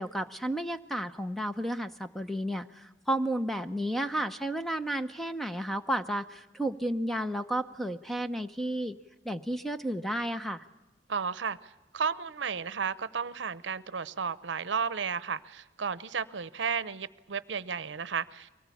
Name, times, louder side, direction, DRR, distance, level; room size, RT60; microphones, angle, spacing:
voice 1, 0.0-9.0 9.2-10.6, right 1 dB, ahead, 0.8 m, -32 dB
voice 2, 11.1-18.5, right 6 dB, 75° right, 0.7 m, -33 dB
24.0 x 19.0 x 8.4 m
head